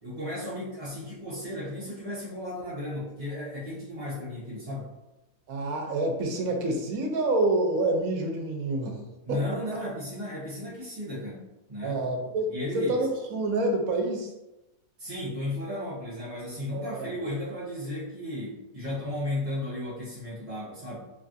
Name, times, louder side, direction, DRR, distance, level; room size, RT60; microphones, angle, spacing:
voice 1, 0.0-4.9 9.2-11.4 11.7-12.0 12.5-13.0 15.0-21.1, left 1 dB, 30° right, -10 dB, 0.8 m, -34 dB
voice 2, 5.5-9.0 9.3-9.4 11.8-14.3 16.7-17.1, right 2 dB, 80° right, 2 dB, 1.0 m, -27 dB
3.2 x 2.4 x 2.6 m, 0.97 s
omnidirectional pair, 1.5 m